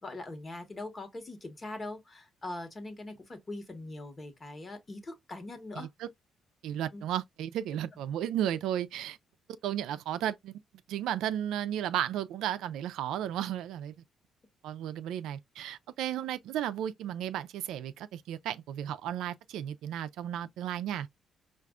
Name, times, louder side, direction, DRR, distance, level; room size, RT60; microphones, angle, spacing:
voice 1, 0.0-5.9 6.9-7.0, left 2 dB, 30° left, 1.2 m, -42 dB
voice 2, 5.8-6.1 6.6-9.2 9.6-10.6 10.9-13.9 14.6-21.1, right 11 dB, 85° right, 0.3 m, -34 dB
4.7 x 2.5 x 2.3 m
cardioid pair, 90°, 0 cm